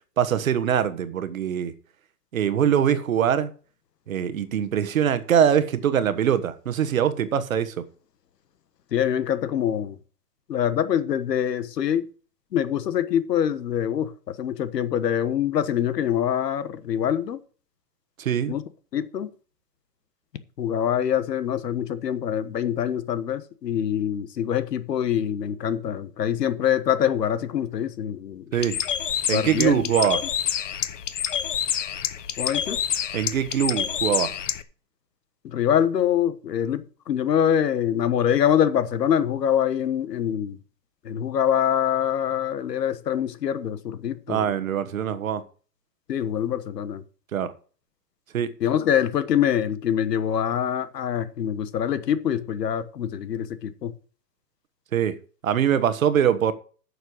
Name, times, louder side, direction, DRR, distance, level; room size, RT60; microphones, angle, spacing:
voice 1, 0.2-1.7 2.3-3.5 4.1-7.8 18.2-18.5 28.5-28.8 29.3-30.2 33.1-34.3 44.3-45.4 47.3-47.5 48.3-48.5 54.9-55.1 55.4-56.5, right 9 dB, 55° right, 1.2 m, -23 dB
voice 2, 8.9-10.0 10.5-12.1 12.5-17.4 18.5-18.6 18.9-19.3 20.6-28.5 29.3-30.1 32.4-32.8 35.4-40.6 41.0-44.5 46.1-47.0 48.6-53.9, left 9 dB, 80° left, 1.4 m, -24 dB
Bird, 28.5-34.6, left 9 dB, 50° left, 0.8 m, -28 dB
9.9 x 6.7 x 6.2 m
hypercardioid pair, 180°, 48 cm